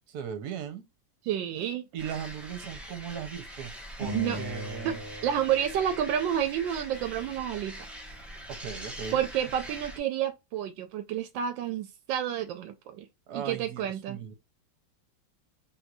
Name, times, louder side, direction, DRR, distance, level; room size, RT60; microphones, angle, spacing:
voice 1, 0.1-0.8 1.9-3.7 4.0-5.0 8.5-9.2 13.3-14.3, right 8 dB, 65° right, 1.3 m, -38 dB
voice 2, 1.2-1.8 4.1-4.4 4.8-4.9 5.2-7.9 9.1-13.1 13.3-14.2, right 10 dB, 80° right, 1.3 m, -30 dB
sound 1, 2.0-10.0, equal, ahead, 0.5 m, -43 dB
sound 2, 4.0-6.6, equal, 35° right, 1.5 m, -39 dB
3.8 x 2.6 x 4.5 m
omnidirectional pair, 2.0 m